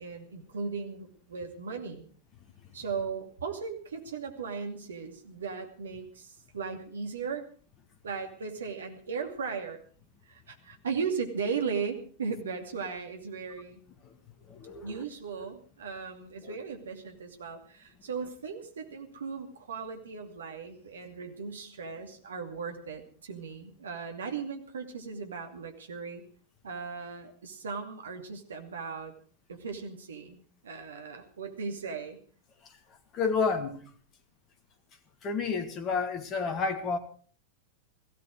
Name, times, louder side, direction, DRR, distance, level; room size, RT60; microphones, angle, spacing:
voice 1, 0.0-2.1 2.7-7.5 8.0-9.8 10.2-13.8 14.8-26.2 26.6-29.1 29.5-30.4 30.6-32.2, right 5 dB, 65° right, 2.5 m, -37 dB
voice 2, 14.5-15.0 16.4-16.6 33.1-33.8 35.2-37.0, left 5 dB, 30° left, 1.9 m, -30 dB
18.0 x 15.5 x 4.8 m
figure-of-eight pair, 90°, 0 cm